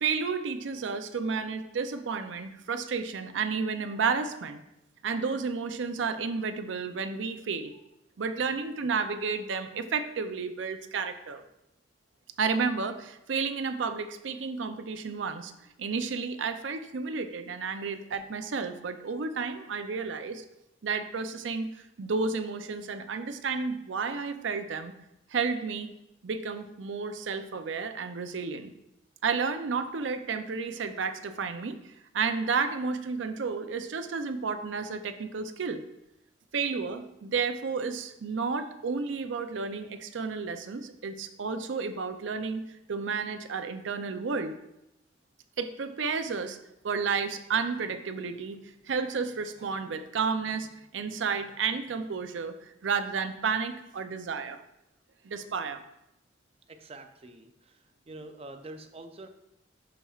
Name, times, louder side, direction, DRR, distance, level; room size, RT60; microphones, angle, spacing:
voice 1, 0.0-4.6 5.0-7.7 8.2-11.4 12.4-15.5 15.8-20.4 20.8-24.9 25.3-25.9 26.2-28.7 29.2-35.8 36.5-44.5 45.6-46.6 46.8-48.6 48.8-50.7 50.9-52.6 52.8-54.6 55.2-55.8, right 5 dB, 85° right, 9 dB, 0.5 m, -31 dB
voice 2, 56.7-59.3, right 2 dB, 30° right, 7 dB, 0.5 m, -46 dB
11.0 x 4.2 x 2.4 m, 0.86 s
head